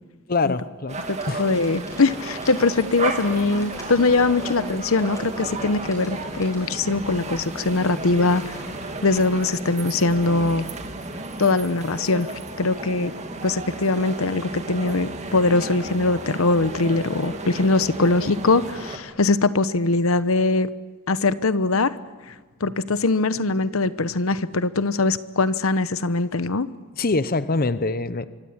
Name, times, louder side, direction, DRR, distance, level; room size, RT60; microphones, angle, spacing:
voice 1, 0.3-1.0 1.3-1.4 27.0-28.3, left 3 dB, 45° left, 14 dB, 0.8 m, -24 dB
sound 1, 0.9-19.0, right 2 dB, 30° right, 2.4 m, -33 dB
voice 2, 1.1-8.6 9.0-10.7 11.4-12.3 12.6-13.1 13.4-20.7 21.1-22.0 22.3-22.4 22.6-26.7, left 3 dB, 70° left, 14 dB, 0.9 m, -22 dB
sound 2, 1.1-9.2, equal, 15° left, 7.4 m, -44 dB
25.0 x 24.5 x 8.8 m, 1.4 s
head